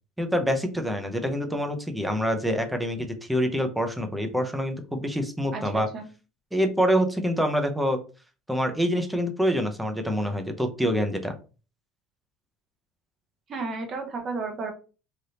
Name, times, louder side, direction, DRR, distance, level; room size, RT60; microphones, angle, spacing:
voice 1, 0.2-5.9 6.5-8.0 8.5-11.3, equal, 5° right, 6 dB, 0.6 m, -26 dB
voice 2, 5.5-6.1 13.5-14.7, right 3 dB, 40° right, 4 dB, 0.9 m, -33 dB
3.3 x 2.6 x 2.8 m, 0.35 s
cardioid pair, 125°, 0 cm